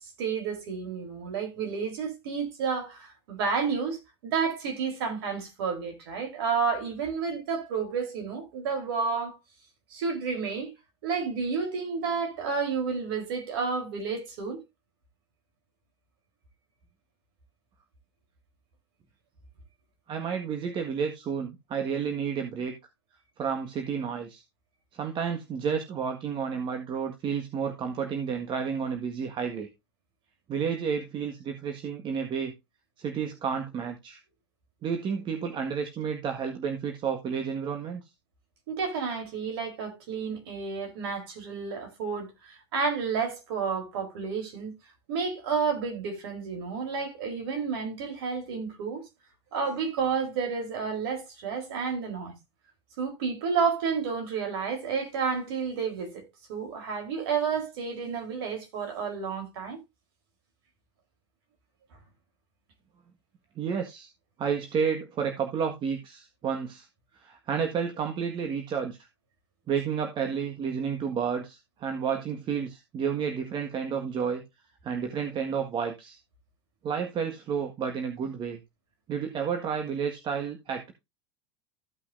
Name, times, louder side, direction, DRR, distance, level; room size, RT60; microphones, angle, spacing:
voice 1, 0.2-9.4 9.9-10.7 11.0-14.6 38.7-44.8 45.1-49.0 49.5-52.3 53.0-59.8, right 5 dB, 70° right, 3.9 m, -31 dB
voice 2, 20.1-22.7 23.4-24.4 24.9-29.7 30.5-32.5 33.0-34.2 34.8-38.0 63.5-64.1 64.4-66.9 67.2-69.0 69.7-74.4 74.8-76.2 76.8-78.6 79.1-80.9, right 6 dB, 35° right, 1.7 m, -31 dB
15.0 x 5.6 x 2.6 m
hypercardioid pair, 100°, 13 cm